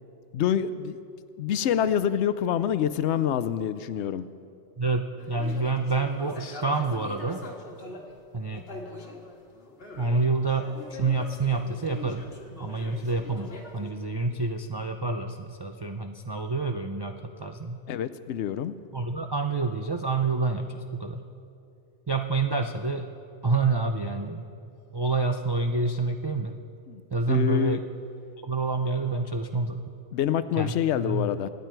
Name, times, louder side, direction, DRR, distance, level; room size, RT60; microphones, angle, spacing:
voice 1, 0.3-1.0 1.4-4.3 17.9-18.7 26.9-27.0 27.3-27.8 30.1-31.5, left 9 dB, 75° left, 12 dB, 0.9 m, -26 dB
voice 2, 4.8-7.4 8.3-8.7 10.0-12.2 12.6-17.8 18.9-21.2 22.1-23.1 23.4-24.5 24.9-26.5 27.1-27.9 28.4-29.9 30.6-31.3, right 3 dB, 35° right, 4 dB, 0.4 m, -28 dB
sound 1, 5.2-8.2 8.5-10.2 10.5-13.9, left 2 dB, 55° left, 1.7 m, -43 dB
25.0 x 9.5 x 4.6 m, 2.5 s
omnidirectional pair, 1.2 m